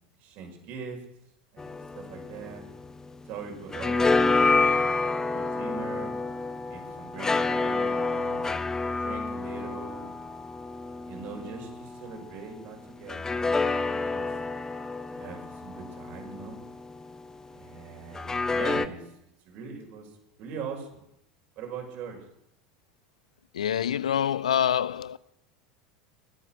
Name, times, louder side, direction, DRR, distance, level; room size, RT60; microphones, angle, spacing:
voice 1, 0.2-1.0 1.5-2.6 3.3-6.1 6.7-8.4 8.9-10.1 11.1-14.3 15.1-16.6 17.5-19.1 19.4-20.1 20.4-21.0 21.6-22.2, right 5 dB, 55° right, 5.9 m, -41 dB
sound 1, 1.6-3.3 3.5-12.2 13.1-17.2 18.1-18.9, left 3 dB, 15° left, 0.9 m, -28 dB
voice 2, 23.5-25.2, left 9 dB, 80° left, 0.5 m, -26 dB
23.0 x 9.0 x 6.3 m
hypercardioid pair, 80°, 4 cm